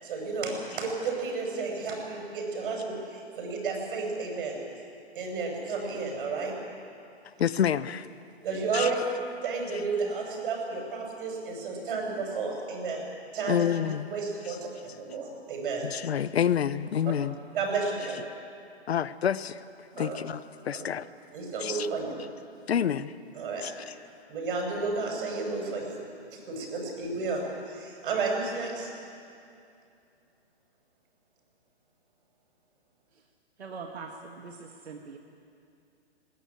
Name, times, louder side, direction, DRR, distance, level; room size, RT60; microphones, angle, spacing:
voice 1, 0.0-4.6 5.1-6.5 8.4-9.0 9.4-13.0 13.3-13.7 14.0-15.9 17.5-18.2 20.0-20.2 20.7-20.8 21.3-22.2 23.3-23.7 24.3-26.0 26.3-28.9, right 4 dB, 50° right, 1 dB, 7.1 m, -32 dB
voice 2, 7.4-8.1 8.7-8.9 13.5-14.1 14.5-14.6 15.8-17.3 18.9-19.6 19.9-21.1 21.6-21.9 22.7-23.1 23.6-23.9, left 9 dB, 70° left, 16 dB, 0.9 m, -28 dB
voice 3, 33.6-35.2, right 4 dB, 70° right, 2 dB, 2.0 m, -42 dB
20.5 x 18.5 x 8.9 m, 2.5 s
hypercardioid pair, 130°, 33 cm